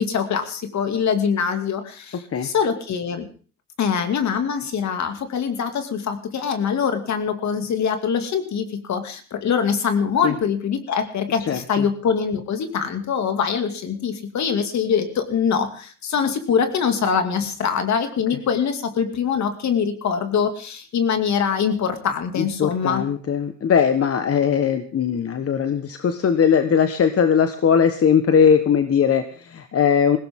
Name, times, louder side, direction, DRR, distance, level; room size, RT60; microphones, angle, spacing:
voice 1, 0.0-3.3 3.8-23.0, left 6 dB, 65° left, 7 dB, 2.5 m, -23 dB
voice 2, 11.5-11.8 22.3-30.2, left 7 dB, 50° left, 8 dB, 1.4 m, -19 dB
19.5 x 16.5 x 3.7 m, 0.41 s
cardioid pair, 90°, 30 cm